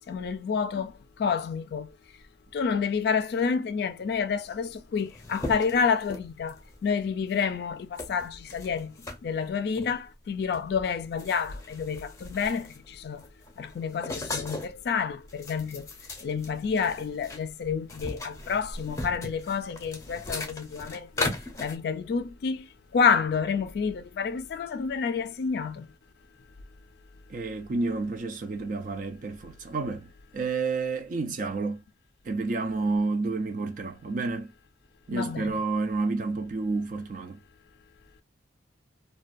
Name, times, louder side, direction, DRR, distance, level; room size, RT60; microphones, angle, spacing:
voice 1, 0.1-0.9 1.2-1.9 2.5-8.9 9.2-13.2 13.6-15.9 16.2-22.7 22.9-25.9 35.1-35.5, left 6 dB, 60° left, 0.3 m, -29 dB
sound 1, 4.5-4.6 4.8-6.7 7.3-7.5 8.0-9.2 9.7-10.0 10.5-10.7 11.0-12.9 13.2-14.8 15.2-17.4 17.7-21.8, left 2 dB, 15° left, 0.6 m, -37 dB
voice 2, 27.3-31.8 32.2-34.5 35.1-37.4, right 3 dB, 45° right, 0.3 m, -30 dB
2.4 x 2.2 x 2.4 m
head